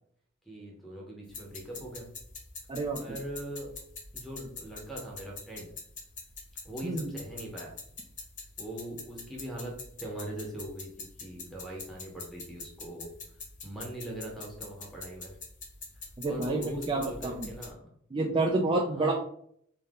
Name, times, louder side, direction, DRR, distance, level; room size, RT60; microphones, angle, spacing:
voice 1, 0.5-2.1 3.0-3.7 4.1-5.7 6.6-7.8 8.6-13.1 13.6-15.4 16.2-17.9 18.9-19.1, right 1 dB, ahead, -2 dB, 0.9 m, -41 dB
sound 1, 1.3-17.7, left 4 dB, 40° left, 1.1 m, -45 dB
voice 2, 2.7-3.2 6.8-7.1 16.2-17.5 18.1-19.1, right 2 dB, 25° right, 0 dB, 0.4 m, -29 dB
3.7 x 2.7 x 3.6 m, 0.64 s
head